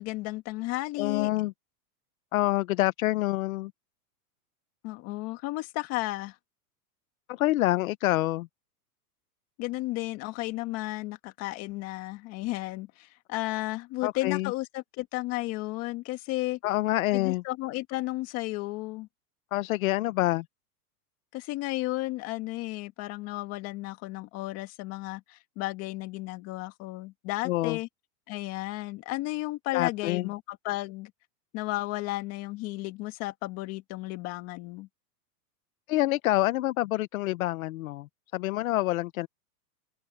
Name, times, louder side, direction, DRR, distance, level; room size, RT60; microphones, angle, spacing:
voice 1, 0.0-1.3 4.8-6.3 9.6-16.6 17.1-19.1 21.3-27.9 28.3-31.1 31.5-34.9, left 19 dB, 30° left, 1.7 m, -33 dB
voice 2, 1.0-1.5 2.3-3.7 7.3-8.5 14.0-14.5 16.6-17.4 19.5-20.4 27.4-27.8 29.7-30.3 35.9-38.1 38.3-39.3, left 17 dB, 60° left, 0.9 m, -27 dB
supercardioid pair, 165°, 48 cm